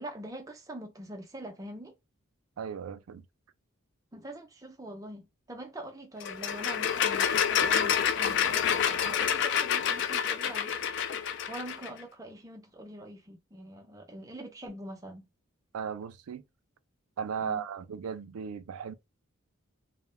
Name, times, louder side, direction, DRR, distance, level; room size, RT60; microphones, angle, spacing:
voice 1, 0.0-1.9 4.1-10.8 11.5-15.3 17.4-17.6, right 1 dB, 15° right, 0.4 m, -44 dB
voice 2, 2.6-3.2 15.7-16.4 17.2-19.0, right 7 dB, 85° right, 0.4 m, -36 dB
sound 1, 6.2-11.9, left 8 dB, 55° left, 0.3 m, -28 dB
2.1 x 2.1 x 3.1 m
head